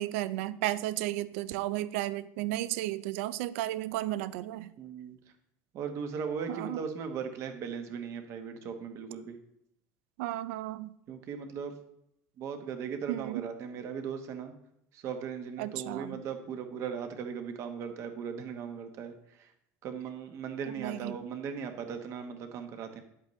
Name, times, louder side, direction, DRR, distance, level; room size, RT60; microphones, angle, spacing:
voice 1, 0.0-4.7 6.5-6.8 10.2-10.9 13.1-13.4 15.6-16.2 20.7-21.2, right 15 dB, 85° right, 16 dB, 0.4 m, -33 dB
voice 2, 4.8-5.2 5.7-9.3 11.1-11.7 12.4-14.5 14.9-19.1 19.8-23.0, right 6 dB, 45° right, 7 dB, 1.2 m, -38 dB
10.5 x 8.0 x 3.2 m, 0.76 s
cardioid pair, 155°, 7 cm